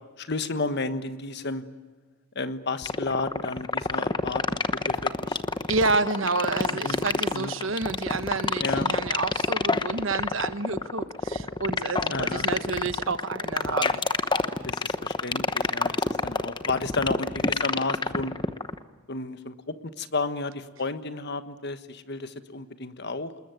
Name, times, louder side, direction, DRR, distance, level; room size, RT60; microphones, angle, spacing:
voice 1, 0.2-1.6 2.3-4.6 4.9-5.4 6.7-7.5 8.6-8.9 12.1-12.5 13.6-13.9 14.6-18.3 19.1-23.3, left 3 dB, 50° left, 11 dB, 1.4 m, -32 dB
sound 1, 2.8-18.8, left 3 dB, 20° left, 1.0 m, -26 dB
voice 2, 5.7-14.0, right 3 dB, 65° right, 12 dB, 1.2 m, -29 dB
27.0 x 21.5 x 9.2 m, 1.3 s
head